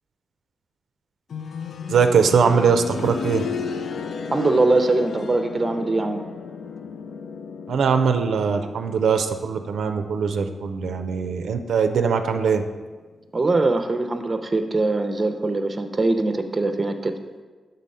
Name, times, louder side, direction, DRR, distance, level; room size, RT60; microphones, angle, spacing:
sound 1, 1.3-12.1 12.4-12.5 13.4-13.5, left 5 dB, 65° left, 0.3 m, -34 dB
voice 1, 1.9-3.4 7.7-12.6, right 6 dB, 85° right, 6 dB, 0.4 m, -21 dB
voice 2, 4.3-6.2 13.3-17.1, right 2 dB, 25° right, 6 dB, 0.6 m, -22 dB
7.5 x 3.9 x 5.4 m, 1.3 s
wide cardioid pair, 110°, 0 cm